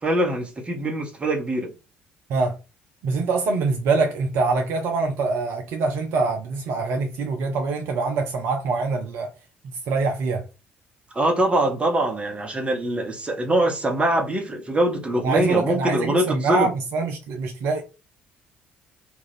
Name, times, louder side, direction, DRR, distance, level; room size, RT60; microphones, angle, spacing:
voice 1, 0.0-1.7 11.1-16.7, right 1 dB, 20° right, 0.9 m, -23 dB
voice 2, 3.0-9.3 9.9-10.4 15.2-16.1 16.4-17.8, right 4 dB, 55° right, 0.4 m, -24 dB
2.5 x 2.3 x 3.2 m
figure-of-eight pair, 50°, 5 cm